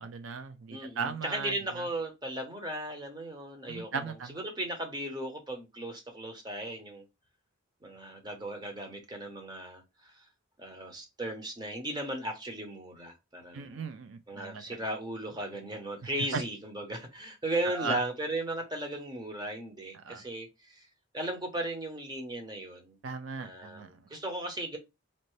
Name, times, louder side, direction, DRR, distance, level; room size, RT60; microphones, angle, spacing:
voice 1, 0.0-1.5 3.7-4.4 13.5-14.6 16.3-16.4 17.8-18.0 20.1-20.2 23.0-23.9, right 5 dB, 75° right, 0.4 m, -37 dB
voice 2, 0.7-7.0 7.8-10.2 10.6-13.9 14.3-20.9 21.1-23.0 23.4-24.8, right 1 dB, 20° right, 0.9 m, -36 dB
4.3 x 2.7 x 3.1 m
head